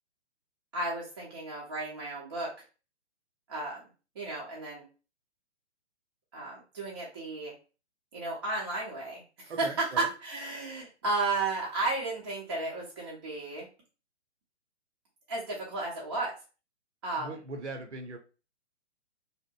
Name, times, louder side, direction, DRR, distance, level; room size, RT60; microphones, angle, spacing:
voice 1, 0.7-2.5 3.5-3.8 4.2-4.8 6.3-7.5 8.1-13.7 15.3-16.3 17.0-17.3, right 2 dB, 20° right, -5 dB, 0.5 m, -33 dB
voice 2, 9.5-10.1 17.2-18.2, right 2 dB, 75° right, 4 dB, 0.7 m, -40 dB
2.8 x 2.1 x 2.2 m, 0.33 s
figure-of-eight pair, 125°, 35 cm